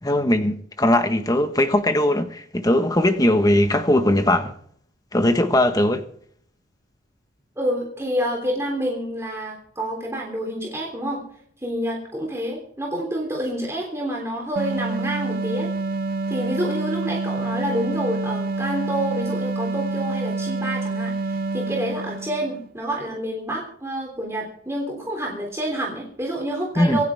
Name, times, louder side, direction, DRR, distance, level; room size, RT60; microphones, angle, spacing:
voice 1, 0.0-4.6 5.1-6.0 26.8-27.0, left 1 dB, 20° left, 1.3 m, -19 dB
voice 2, 7.6-11.2 11.6-15.7 16.3-27.0, equal, 15° right, 3.3 m, -28 dB
sound 1, 14.6-22.7, right 3 dB, 50° right, 0.7 m, -27 dB
26.5 x 9.9 x 3.5 m
head